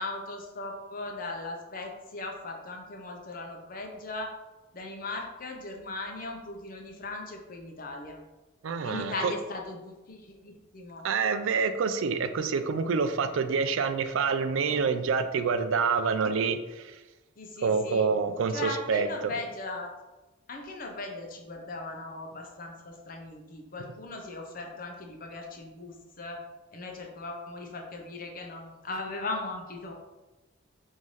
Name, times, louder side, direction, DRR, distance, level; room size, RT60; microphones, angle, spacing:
voice 1, 0.0-4.3 4.7-8.2 8.8-11.0 17.4-18.1 18.5-19.9 20.5-26.4 26.7-29.9, left 2 dB, 45° left, 1 dB, 0.7 m, -38 dB
voice 2, 8.6-9.3 11.0-16.9 17.6-19.1, right 5 dB, 75° right, 10 dB, 0.4 m, -27 dB
5.4 x 2.7 x 3.1 m, 1.1 s
head